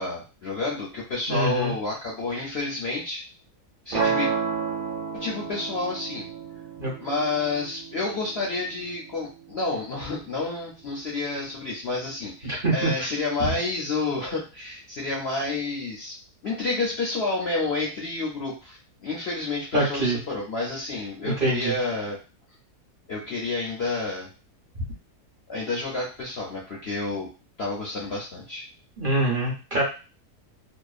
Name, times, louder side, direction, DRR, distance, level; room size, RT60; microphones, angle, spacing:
voice 1, 0.0-3.2 3.8-4.3 5.1-6.3 7.0-16.2 16.4-22.2 23.1-24.3 25.5-27.3 27.6-28.7, left 3 dB, 55° left, -4 dB, 0.8 m, -29 dB
voice 2, 1.3-1.7 6.8-6.9 12.6-13.1 19.7-20.2 21.2-21.7 29.0-29.8, right 2 dB, 40° right, -5 dB, 1.0 m, -24 dB
sound 1, 3.9-10.0, right 5 dB, 70° right, 1.0 m, -31 dB
2.8 x 2.2 x 2.4 m, 0.31 s
omnidirectional pair, 1.7 m